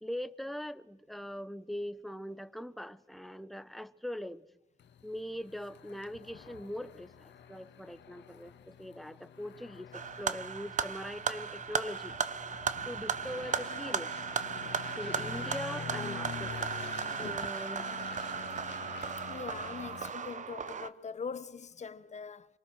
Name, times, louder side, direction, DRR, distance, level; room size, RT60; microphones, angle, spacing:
voice 1, 0.0-4.5 5.0-12.1 12.8-14.1 15.0-16.7 17.2-17.9, equal, ahead, 1.0 m, -41 dB
sound 1, 4.8-20.1, left 8 dB, 65° left, 1.7 m, -47 dB
Creative Tempo Clock, 9.9-20.9, right 6 dB, 40° right, 0.9 m, -36 dB
voice 2, 19.3-22.5, left 5 dB, 35° left, 1.0 m, -42 dB
26.5 x 20.0 x 6.4 m
cardioid pair, 90°, 20 cm